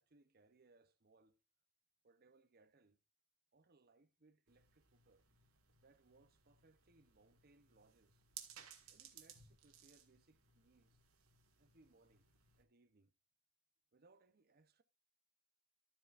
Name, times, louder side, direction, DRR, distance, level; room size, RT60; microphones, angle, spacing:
voice 1, 0.0-1.4 2.0-3.0 3.5-5.3 5.8-8.2 8.9-11.0 11.6-12.3 12.6-13.1 13.9-14.8, right 3 dB, 45° right, 0.7 m, -70 dB
sound 1, 4.5-12.6, right 9 dB, 75° right, 1.7 m, -61 dB
12.5 x 9.0 x 2.5 m
head